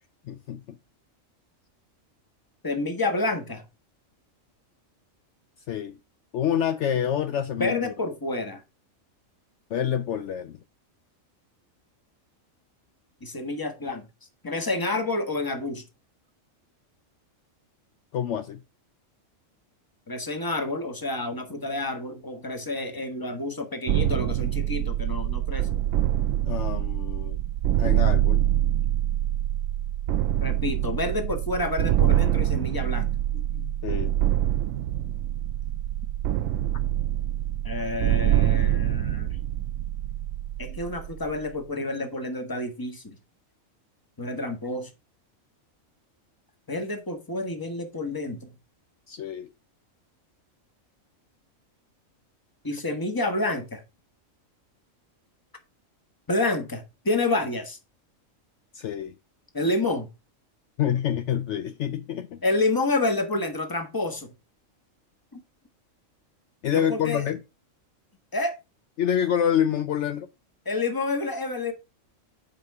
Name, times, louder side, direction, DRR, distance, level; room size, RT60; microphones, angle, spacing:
voice 1, 0.3-0.8 5.7-6.0 6.3-7.9 9.7-10.6 18.1-18.6 26.5-27.4 27.8-28.4 33.3-34.1 49.1-49.5 58.7-59.1 60.8-62.4 66.6-67.4 69.0-70.3, left 9 dB, 65° left, 0.9 m, -27 dB
voice 2, 2.6-3.6 7.6-8.6 13.2-14.1 14.4-15.8 20.1-25.8 30.4-33.1 37.6-39.4 40.6-43.2 44.2-44.9 46.7-48.5 52.6-53.8 56.3-57.8 59.5-60.1 62.4-64.3 65.3-65.4 66.7-67.3 68.3-68.6 70.6-71.7, left 2 dB, 15° left, 1.3 m, -29 dB
sound 1, 23.9-41.5, right 12 dB, 75° right, 0.9 m, -25 dB
9.3 x 5.1 x 4.6 m
omnidirectional pair, 1.4 m